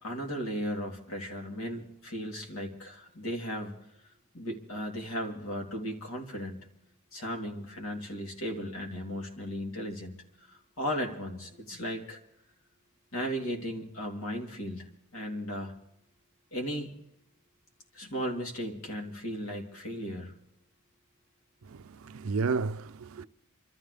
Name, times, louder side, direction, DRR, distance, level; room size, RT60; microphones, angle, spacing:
voice 1, 0.0-3.7 4.3-6.6 7.1-10.1 10.5-12.2 13.1-14.8 15.1-15.7 16.5-16.9 17.9-20.3 23.2-23.3, equal, 85° left, 3.2 m, -36 dB
voice 2, 21.7-23.2, right 4 dB, 80° right, 0.5 m, -32 dB
28.5 x 13.5 x 3.4 m
head